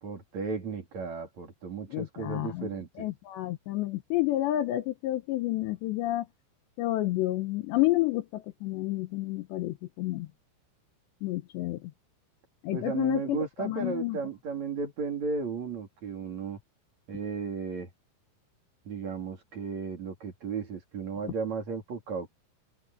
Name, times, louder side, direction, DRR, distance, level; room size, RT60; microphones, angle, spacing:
voice 1, 0.0-3.1 12.7-16.6 17.1-17.9 18.9-22.3, right 5 dB, 40° right, 3.6 m, -34 dB
voice 2, 1.9-2.7 3.0-6.3 6.8-10.3 11.2-11.8 12.6-14.2, left 16 dB, 80° left, 2.7 m, -30 dB
open air
omnidirectional pair, 5.9 m